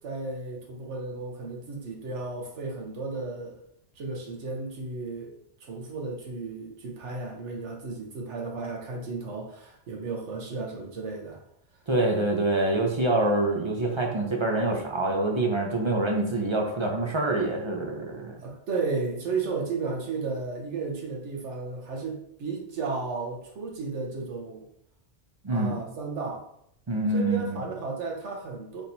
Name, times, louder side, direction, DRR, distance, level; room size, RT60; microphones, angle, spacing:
voice 1, 0.0-3.6 4.0-11.4 18.4-24.6 25.5-26.4 27.1-28.8, right 3 dB, 85° right, -1 dB, 1.2 m, -34 dB
voice 2, 11.9-18.4 25.4-25.8 26.9-27.6, right 2 dB, 35° right, 0 dB, 0.5 m, -26 dB
4.2 x 3.5 x 2.7 m, 0.71 s
omnidirectional pair, 1.2 m